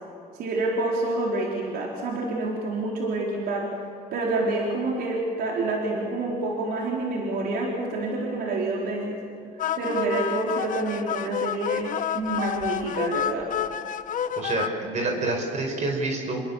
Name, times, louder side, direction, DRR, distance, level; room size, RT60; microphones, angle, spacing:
voice 1, 0.4-3.7 4.1-9.2 9.8-11.9 12.1-13.5, right 2 dB, 70° right, -2 dB, 4.4 m, -27 dB
sound 1, 9.6-14.7, left 9 dB, 50° left, 1.1 m, -29 dB
voice 2, 14.3-16.4, right 2 dB, 45° right, 2 dB, 5.0 m, -27 dB
28.0 x 21.5 x 7.4 m, 2.6 s
cardioid pair, 110°, 17 cm